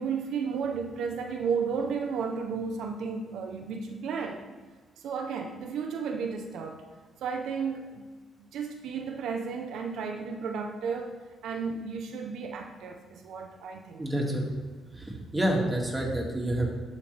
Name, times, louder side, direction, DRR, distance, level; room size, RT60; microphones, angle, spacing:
voice 1, 0.0-4.4 5.0-6.8 7.2-8.1 8.4-14.1, right 5 dB, 80° right, 4 dB, 0.7 m, -33 dB
voice 2, 14.0-14.4 15.3-16.7, right 1 dB, 15° right, -1 dB, 2.1 m, -27 dB
12.0 x 5.5 x 3.3 m, 1.4 s
cardioid pair, 90°, 0 cm